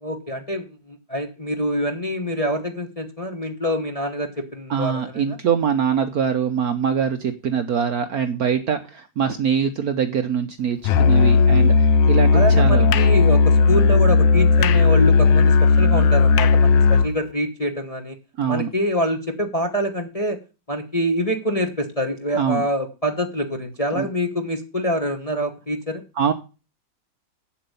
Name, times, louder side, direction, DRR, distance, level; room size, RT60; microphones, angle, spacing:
voice 1, 0.0-5.4 12.3-18.2 18.5-20.4 20.7-26.0, equal, 25° left, 4 dB, 0.9 m, -25 dB
voice 2, 4.7-13.0 18.4-18.7 22.3-22.6 23.9-24.1 26.2-26.3, right 7 dB, 60° right, 9 dB, 1.0 m, -23 dB
Musical instrument, 10.8-17.2, left 4 dB, 70° left, 1.3 m, -15 dB
8.5 x 7.3 x 6.8 m, 0.31 s
omnidirectional pair, 2.2 m